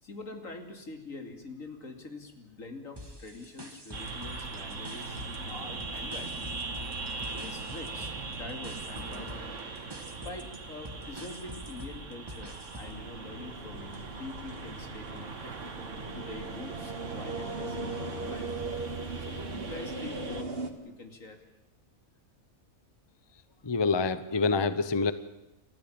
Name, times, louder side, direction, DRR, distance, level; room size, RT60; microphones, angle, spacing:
voice 1, 0.0-5.2 5.5-6.6 7.3-9.5 10.1-15.6 16.1-20.6 20.8-21.5, left 3 dB, 70° left, 5 dB, 3.0 m, -45 dB
sound 1, 3.0-5.5 5.8-13.0, equal, 15° right, 1.9 m, -46 dB
sound 2, 3.9-20.4, right 3 dB, 60° right, 2.0 m, -40 dB
sound 3, 12.8-20.7, right 3 dB, 45° right, 2.2 m, -39 dB
voice 2, 23.6-25.1, left 4 dB, 20° left, 13 dB, 0.8 m, -26 dB
29.5 x 14.0 x 8.8 m, 0.97 s
omnidirectional pair, 1.4 m